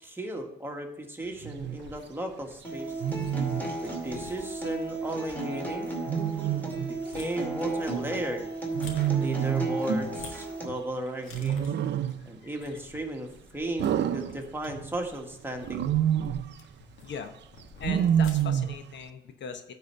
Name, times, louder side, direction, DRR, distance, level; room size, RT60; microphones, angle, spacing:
voice 1, 0.0-2.9 3.8-5.9 6.9-8.5 9.2-11.7 12.2-15.9, right 1 dB, 10° right, 2 dB, 1.6 m, -35 dB
Wild animals, 1.4-1.8 3.0-3.7 6.1-7.0 8.7-9.8 11.3-12.3 13.8-14.9 15.6-16.5 17.8-18.8, right 10 dB, 60° right, 0.6 m, -27 dB
sound 1, 1.6-18.7, left 4 dB, 90° left, 1.6 m, -50 dB
Acoustic guitar, 2.6-10.7, right 2 dB, 10° left, 2.5 m, -34 dB
voice 2, 12.2-12.5 17.0-17.4 17.8-19.7, left 6 dB, 65° left, 8 dB, 0.9 m, -40 dB
9.5 x 4.3 x 6.8 m, 0.77 s
cardioid pair, 90°, 20 cm